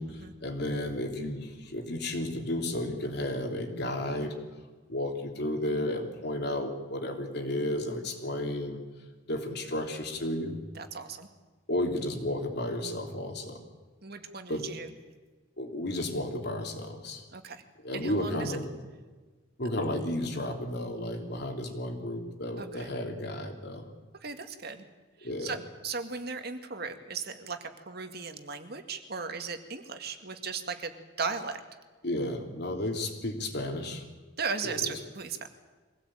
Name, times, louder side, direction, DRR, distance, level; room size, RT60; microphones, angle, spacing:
voice 1, 0.0-4.4 4.9-8.8 9.3-10.6 11.7-13.6 14.5-14.6 15.6-17.2 17.8-18.8 19.6-23.9 25.2-25.6 32.0-34.0 34.6-35.0, left 1 dB, 60° left, 3 dB, 3.4 m, -33 dB
voice 2, 10.8-11.3 14.0-14.9 17.3-17.6 17.9-18.6 22.6-22.9 24.2-24.8 25.4-25.6 25.8-27.6 27.9-30.9 31.2-31.6 34.4-35.5, right 5 dB, 55° right, 7 dB, 2.0 m, -36 dB
23.5 x 17.0 x 8.9 m, 1.3 s
head